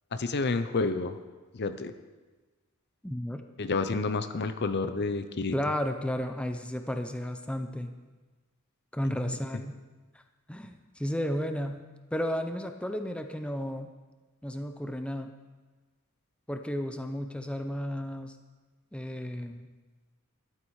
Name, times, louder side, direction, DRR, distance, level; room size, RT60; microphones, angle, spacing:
voice 1, 0.1-1.2 1.5-1.9 3.6-5.6 9.0-9.4, left 3 dB, 50° left, 10 dB, 0.7 m, -30 dB
voice 2, 3.0-3.4 5.5-7.9 8.9-9.8 10.1-10.2 10.5-11.9 12.1-13.9 14.4-15.4 16.5-18.4 18.9-19.7, equal, 5° left, 6 dB, 0.6 m, -33 dB
12.5 x 12.0 x 4.8 m, 1.3 s
head